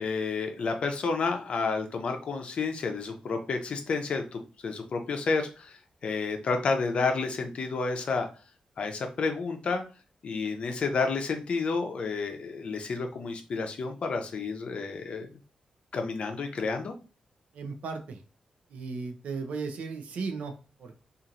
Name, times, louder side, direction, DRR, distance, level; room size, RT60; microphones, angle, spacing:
voice 1, 0.0-5.8 6.0-8.3 8.8-9.8 10.2-15.3 15.9-16.9, left 4 dB, 55° left, 5 dB, 0.5 m, -30 dB
voice 2, 17.5-18.2 18.7-20.9, right 4 dB, 85° right, 5 dB, 0.5 m, -36 dB
2.9 x 2.5 x 2.5 m, 0.34 s
wide cardioid pair, 140°, 2 cm